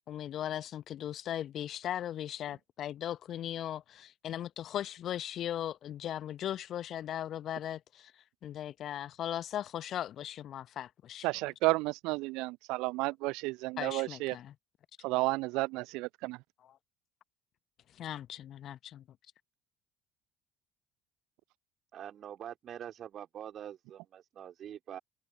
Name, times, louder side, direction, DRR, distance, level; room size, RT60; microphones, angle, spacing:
voice 1, 0.1-11.3 13.8-14.5 16.6-16.8 17.9-19.0, left 11 dB, 50° left, 0.9 m, -38 dB
voice 2, 11.2-14.4 15.0-16.4, right 23 dB, 60° right, 0.7 m, -32 dB
voice 3, 21.9-25.0, right 10 dB, 45° right, 4.1 m, -45 dB
open air
figure-of-eight pair, 55°, 0 cm